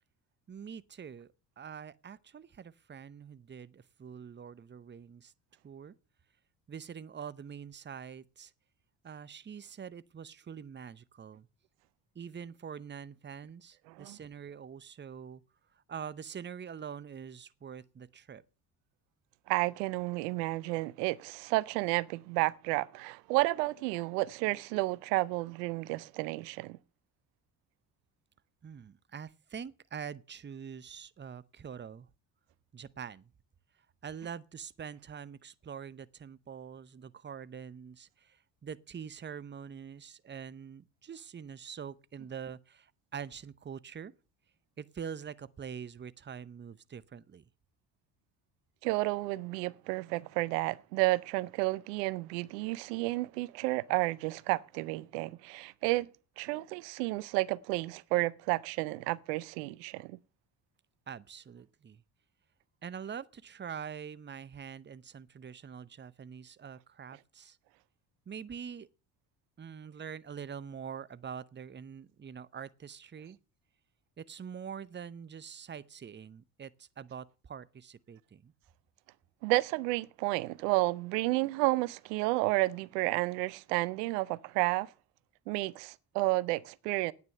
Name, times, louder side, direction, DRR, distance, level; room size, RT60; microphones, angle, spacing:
voice 1, 0.5-1.3 1.6-5.3 5.6-5.9 6.7-8.5 9.0-11.5 12.1-15.4 15.9-18.4 28.6-32.1 32.7-33.3 34.0-44.1 44.8-47.4 61.1-62.0 62.8-67.6 68.3-68.9 69.6-73.4 74.2-78.5, right 7 dB, 25° right, 0.7 m, -44 dB
voice 2, 13.9-14.2 19.5-26.8 48.8-56.1 56.4-60.2 79.4-84.9 85.5-87.1, right 20 dB, 90° right, 0.6 m, -31 dB
9.5 x 9.2 x 6.7 m
hypercardioid pair, 60°, 47 cm